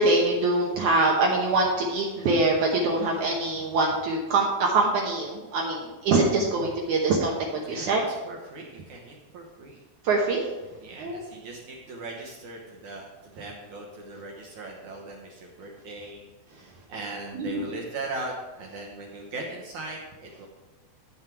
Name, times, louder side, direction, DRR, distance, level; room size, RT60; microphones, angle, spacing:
voice 1, 0.0-7.3 7.7-8.0 10.0-10.4 11.0-11.2 17.3-17.6, right 2 dB, 90° right, -1 dB, 1.7 m, -24 dB
voice 2, 7.6-9.8 10.8-16.2 16.5-20.5, right 2 dB, 70° right, -1 dB, 1.8 m, -39 dB
10.5 x 7.3 x 4.6 m, 1.2 s
omnidirectional pair, 5.0 m